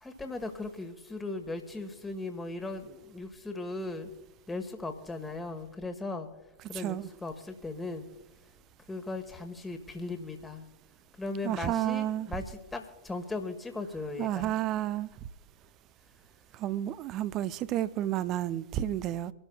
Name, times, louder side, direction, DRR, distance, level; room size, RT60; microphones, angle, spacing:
voice 1, 0.0-4.1 4.5-6.3 6.7-8.0 8.9-10.6 11.2-14.5, left 2 dB, 10° left, 1.3 m, -38 dB
voice 2, 6.7-7.1 11.4-12.3 14.2-15.1 16.6-19.3, right 12 dB, 35° right, 0.5 m, -31 dB
25.5 x 12.5 x 2.2 m
figure-of-eight pair, 90°, 0 cm